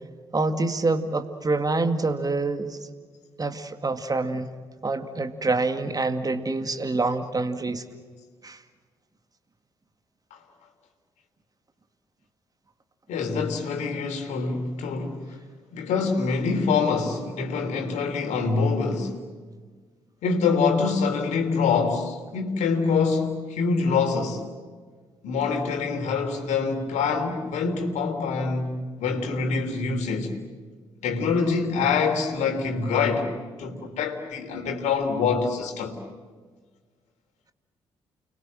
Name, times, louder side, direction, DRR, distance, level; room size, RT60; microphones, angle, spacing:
voice 1, 0.3-2.8 3.4-4.5 4.8-7.8 8.4-8.6, right 3 dB, 30° right, 2.2 m, -26 dB
voice 2, 13.1-15.2 15.7-19.2 20.2-24.4 25.2-30.3 31.0-33.3 33.6-36.0, left 5 dB, 65° left, 3.5 m, -25 dB
30.0 x 22.5 x 7.7 m
hypercardioid pair, 45°, 13 cm